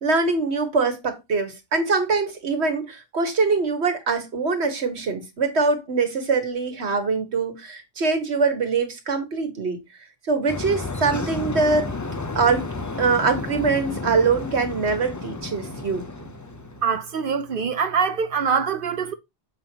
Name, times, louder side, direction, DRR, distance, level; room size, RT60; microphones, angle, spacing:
voice 1, 0.0-9.8 10.3-11.9 12.4-12.7 13.0-16.0, right 4 dB, 80° right, 1.6 m, -23 dB
sound 1, 10.5-17.0, left 3 dB, 25° left, 0.5 m, -32 dB
voice 2, 16.8-19.1, right 6 dB, 60° right, 0.8 m, -24 dB
7.5 x 5.3 x 2.9 m
omnidirectional pair, 1.1 m